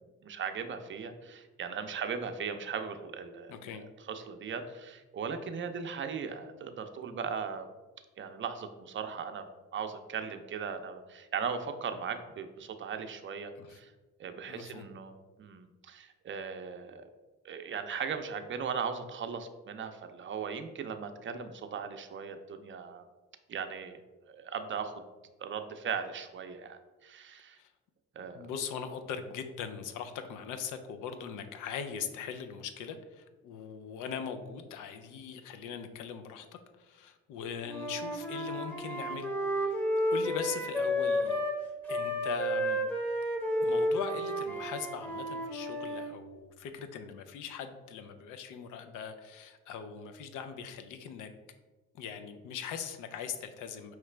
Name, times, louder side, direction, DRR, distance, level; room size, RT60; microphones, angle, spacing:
voice 1, 0.2-7.7 8.2-9.5 9.7-13.9 14.2-17.1 17.4-23.0 23.5-24.0 24.3-25.0 25.4-27.6 28.2-28.5, right 6 dB, 40° right, 8 dB, 0.5 m, -38 dB
voice 2, 3.5-3.8 13.6-13.8 14.5-14.9 27.6-27.7 28.3-36.5 36.8-39.3 39.6-39.7 40.1-41.4 41.9-42.8 43.6-51.3 51.9-53.9, left 7 dB, 90° left, 8 dB, 0.5 m, -40 dB
Wind instrument woodwind instrument, 37.7-41.6 41.9-46.1, equal, 5° left, 0.8 m, -32 dB
4.8 x 3.2 x 3.2 m, 1.2 s
cardioid pair, 90°, 30 cm